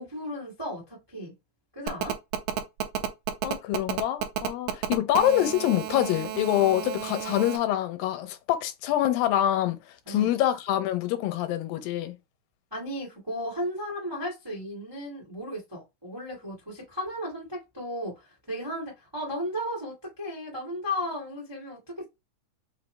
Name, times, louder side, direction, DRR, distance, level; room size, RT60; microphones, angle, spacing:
voice 1, 0.0-1.3 1.7-2.1 10.0-10.3 12.7-22.0, equal, 25° right, 0.5 m, -35 dB
Telephone, 1.9-7.6, right 11 dB, 85° right, 1.8 m, -31 dB
voice 2, 3.4-9.8 10.1-12.1, left 12 dB, 90° left, 2.3 m, -25 dB
5.5 x 2.0 x 3.2 m
omnidirectional pair, 3.9 m